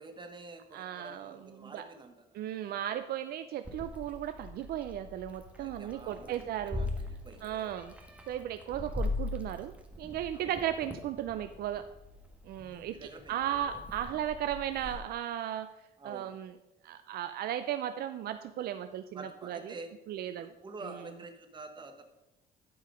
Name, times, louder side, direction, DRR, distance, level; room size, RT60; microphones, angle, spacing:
voice 1, 0.0-2.8 5.6-7.7 10.3-10.5 12.7-13.4 13.7-13.8 16.0-16.3 19.1-19.9 20.4-22.0, right 3 dB, 25° right, 6 dB, 1.3 m, -48 dB
voice 2, 0.7-1.9 2.3-6.9 7.4-7.9 8.3-11.8 12.4-15.7 16.0-16.5 16.8-19.7 20.1-20.5, right 11 dB, 65° right, 10 dB, 0.5 m, -36 dB
Meow, 3.6-14.9, left 2 dB, 10° right, 1.3 m, -41 dB
12.5 x 4.8 x 5.0 m, 0.96 s
cardioid pair, 110°, 17 cm